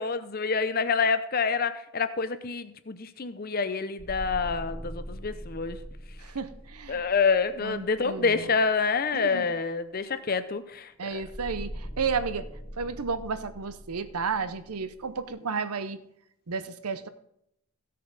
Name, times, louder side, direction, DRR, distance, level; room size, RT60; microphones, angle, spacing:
voice 1, 0.0-5.8 6.9-11.2, left 5 dB, 40° left, 12 dB, 0.6 m, -27 dB
sound 1, 4.0-8.4 11.1-15.3, equal, 15° left, 1.1 m, -42 dB
voice 2, 6.2-7.0 7.6-8.5 9.1-9.5 11.0-12.5 12.8-16.0 16.5-17.1, right 5 dB, 85° right, 12 dB, 0.8 m, -32 dB
16.0 x 6.5 x 4.1 m, 0.76 s
head